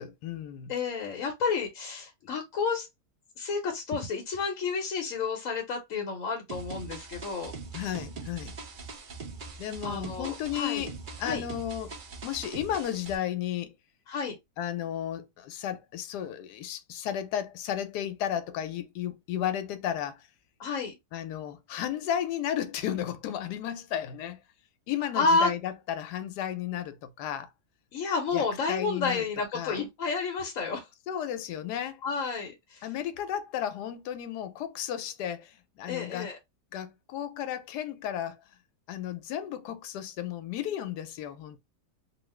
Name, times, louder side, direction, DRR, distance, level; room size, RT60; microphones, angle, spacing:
voice 1, 0.0-0.7 7.7-8.5 9.6-12.0 12.2-13.7 14.6-20.3 21.1-24.4 24.9-27.5 28.3-29.2 29.5-29.8 31.1-32.0 32.8-36.3 36.7-38.4 38.9-41.6, left 10 dB, 85° left, 1.2 m, -34 dB
voice 2, 0.7-2.9 3.4-7.5 9.8-10.8 11.2-11.4 14.1-14.3 20.6-21.0 25.1-25.5 27.9-30.9 32.0-32.8 35.9-36.4, left 4 dB, 65° left, 1.0 m, -30 dB
sound 1, 6.5-13.2, right 4 dB, 50° right, 0.6 m, -42 dB
2.9 x 2.4 x 3.1 m
omnidirectional pair, 1.7 m